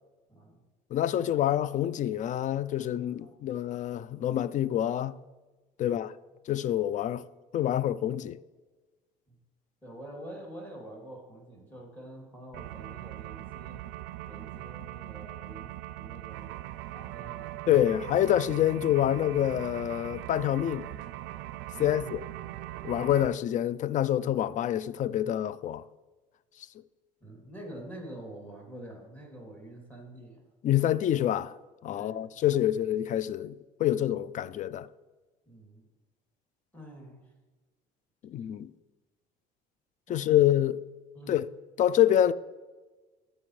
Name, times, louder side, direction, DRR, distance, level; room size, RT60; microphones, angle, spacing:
voice 1, 0.3-0.6 1.2-1.3 3.2-3.3 5.8-6.0 9.8-13.8 14.3-16.5 16.9-17.6 21.7-22.1 27.2-30.4 31.9-32.7 35.5-35.9 36.7-37.3 40.1-40.2 41.1-41.5, right 1 dB, 10° left, 2.7 m, -46 dB
voice 2, 0.9-5.2 5.8-6.1 6.5-7.2 7.5-8.4 17.7-20.9 21.8-22.2 22.8-25.8 30.6-31.6 31.8-34.9 38.2-38.7 40.1-40.8 41.3-41.5 41.8-42.3, left 11 dB, 45° left, 0.4 m, -26 dB
sound 1, 12.5-23.3, right 15 dB, 75° right, 0.4 m, -41 dB
13.0 x 5.4 x 3.2 m
supercardioid pair, 80°, 18 cm